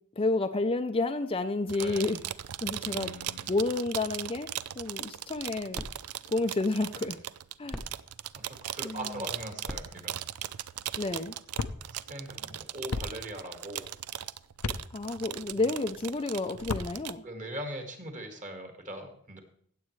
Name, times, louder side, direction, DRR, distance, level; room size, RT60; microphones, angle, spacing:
voice 1, 0.2-2.2 2.6-3.1 3.5-4.5 4.8-5.8 6.3-7.2 7.6-7.8 8.8-9.2 11.0-11.4 14.9-17.2, left 2 dB, 25° left, 8 dB, 0.5 m, -30 dB
sound 1, 1.7-17.2, right 12 dB, 85° right, 0.5 m, -39 dB
voice 2, 1.8-2.1 2.9-3.6 8.3-10.2 11.8-13.9 17.2-19.4, right 1 dB, 35° right, 5 dB, 1.9 m, -41 dB
sound 2, 5.2-11.6, equal, ahead, 0.8 m, -47 dB
sound 3, 11.6-11.8 12.9-13.1 14.6-14.8 16.6-16.9, left 4 dB, 85° left, 0.8 m, -32 dB
16.0 x 8.0 x 3.2 m, 0.65 s
head